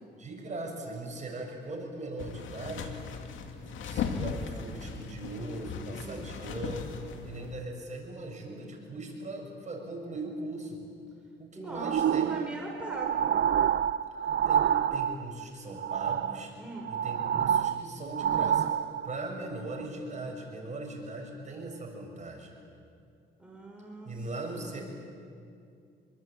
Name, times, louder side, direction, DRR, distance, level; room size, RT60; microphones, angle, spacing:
voice 1, 0.2-3.0 3.4-6.9 7.2-10.8 11.4-12.4 14.5-16.5 16.9-18.7 19.0-22.5 24.1-24.8, right 2 dB, 35° right, 1 dB, 7.1 m, -39 dB
sound 1, 2.2-7.6, left 5 dB, 80° left, 2.4 m, -37 dB
voice 2, 6.0-6.3 11.6-13.3 16.6-16.9 23.4-24.3 24.6-24.8, right 2 dB, 5° right, -1 dB, 5.6 m, -41 dB
sound 2, 11.7-15.4 15.8-16.5 16.8-19.2 19.8-19.9, right 9 dB, 60° right, 0.7 m, -28 dB
26.5 x 23.0 x 9.0 m, 2.4 s
cardioid pair, 90°, 20 cm